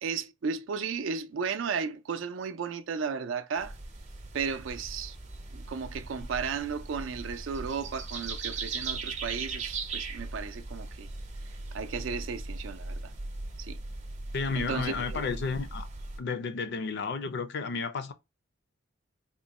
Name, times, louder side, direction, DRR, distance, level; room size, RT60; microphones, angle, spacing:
voice 1, 0.0-3.8 4.3-5.2 5.5-11.1 11.5-13.0 13.6-13.8 14.6-15.2, right 6 dB, 65° right, 0.4 m, -34 dB
sound 1, 3.6-16.2, right 3 dB, 35° right, 0.7 m, -39 dB
voice 2, 14.3-15.9 16.2-18.1, left 4 dB, 55° left, 0.4 m, -32 dB
3.6 x 2.1 x 4.1 m
head